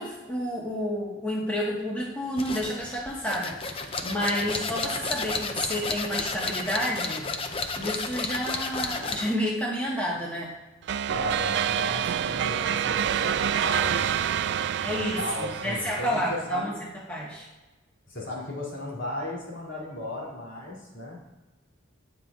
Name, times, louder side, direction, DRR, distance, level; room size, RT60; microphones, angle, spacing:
voice 1, 0.0-7.3 7.7-10.5 14.8-16.7 17.1-17.5, equal, 10° left, -5 dB, 1.4 m, -30 dB
sound 1, 2.4-9.4, left 3 dB, 30° left, 0.6 m, -32 dB
sound 2, 10.9-16.4, right 9 dB, 60° right, 0.3 m, -27 dB
voice 2, 11.1-14.2 14.9-16.8 18.1-21.2, left 1 dB, 70° left, -3 dB, 2.8 m, -36 dB
17.5 x 5.8 x 2.4 m, 1.2 s
head